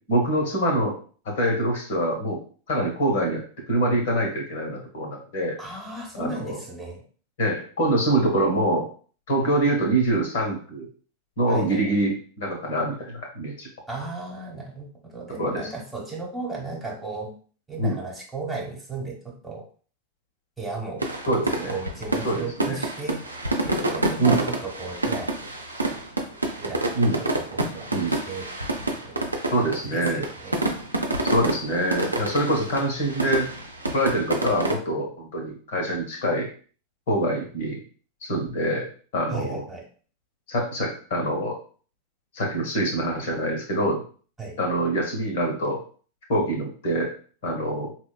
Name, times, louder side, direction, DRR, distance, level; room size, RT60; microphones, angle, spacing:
voice 1, 0.1-1.0 1.2-2.4 2.7-3.4 3.7-5.6 6.2-6.6 7.4-8.9 9.3-10.9 11.4-13.7 15.4-15.7 17.8-18.0 21.3-21.7 22.2-22.8 24.2-24.4 26.9-27.2 27.9-28.2 29.5-30.2 31.2-33.5 33.9-36.5 37.1-37.8 38.2-38.9 39.1-39.6 40.5-41.6 42.3-44.0 44.6-45.8 46.3-47.1 47.4-47.9, right 1 dB, 55° left, 1 dB, 1.0 m, -25 dB
voice 2, 5.6-7.0 11.5-11.8 13.9-17.3 17.7-19.6 20.6-21.1 21.4-23.2 23.6-25.3 25.9-26.0 26.6-28.5 28.7-29.2 29.5-29.6 29.9-30.6 39.3-39.8 44.4-44.6, right 3 dB, 10° right, -3 dB, 1.1 m, -35 dB
sound 1, 21.0-34.7, right 2 dB, 85° right, 0.5 m, -28 dB
4.3 x 2.2 x 2.3 m, 0.42 s
figure-of-eight pair, 90°, 0 cm